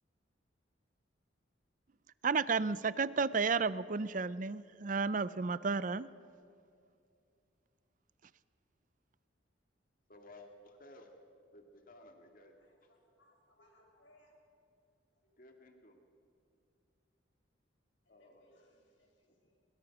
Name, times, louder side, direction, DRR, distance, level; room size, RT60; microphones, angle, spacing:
voice 1, 2.2-6.1, right 4 dB, 40° right, 17 dB, 0.5 m, -32 dB
voice 2, 10.1-11.1 11.5-12.6 12.8-12.9 15.4-16.0 18.1-18.7, left 1 dB, 45° left, 4 dB, 2.3 m, -57 dB
voice 3, 12.6-14.4 15.1-15.3 18.0-19.6, left 1 dB, 75° left, -1 dB, 6.4 m, -69 dB
22.0 x 21.5 x 6.1 m, 2.5 s
head